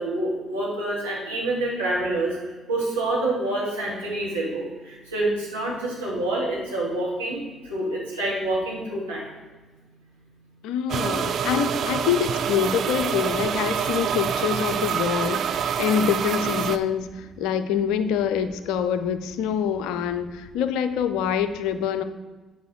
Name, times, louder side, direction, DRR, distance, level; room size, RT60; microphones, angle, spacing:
voice 1, 0.0-2.4 2.7-9.3, right 2 dB, 85° right, -7 dB, 2.7 m, -27 dB
voice 2, 10.6-22.0, left 8 dB, 65° left, 11 dB, 0.5 m, -25 dB
sound 1, 10.9-16.8, right 8 dB, 55° right, 0.5 m, -26 dB
9.1 x 5.2 x 6.3 m, 1.3 s
figure-of-eight pair, 45°, 0 cm